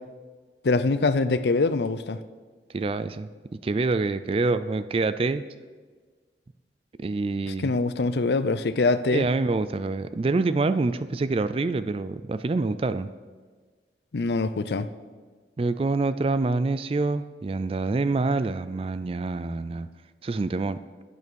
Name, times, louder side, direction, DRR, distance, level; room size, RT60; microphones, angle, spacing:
voice 1, 0.6-2.2 7.5-9.2 14.1-14.9, left 3 dB, 70° left, 13 dB, 0.5 m, -24 dB
voice 2, 2.7-5.4 7.0-7.7 9.1-13.1 15.6-19.9 20.2-20.8, right 3 dB, 30° right, 13 dB, 0.3 m, -26 dB
9.5 x 8.3 x 6.3 m, 1.5 s
head